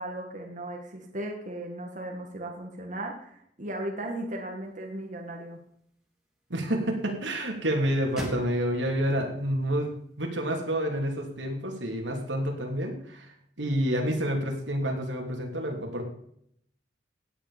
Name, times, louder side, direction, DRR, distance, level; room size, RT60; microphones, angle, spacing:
voice 1, 0.0-5.6, right 1 dB, 45° right, 1 dB, 1.9 m, -36 dB
sound 1, 4.6-10.8, equal, 5° right, 3.5 m, -46 dB
voice 2, 6.5-13.3 13.6-16.1, equal, 85° right, 1 dB, 3.2 m, -29 dB
17.0 x 10.0 x 5.2 m, 0.70 s
head